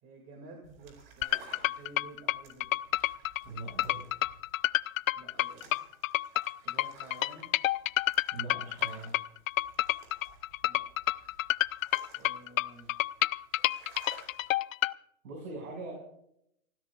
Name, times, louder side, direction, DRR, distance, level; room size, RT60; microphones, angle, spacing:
voice 1, 0.0-2.8 5.1-5.8 6.6-7.6 10.6-10.9 12.1-13.0, right 2 dB, 25° right, 2 dB, 2.3 m, -52 dB
sound 1, 0.6-14.5, right 4 dB, 45° right, 4.8 m, -56 dB
sound 2, 1.2-14.9, left 15 dB, 70° left, 0.5 m, -29 dB
voice 2, 3.4-4.1 8.3-9.2 15.2-15.9, right 3 dB, 80° right, 0 dB, 5.9 m, -41 dB
28.5 x 16.5 x 2.4 m, 0.74 s
supercardioid pair, 160°, 42 cm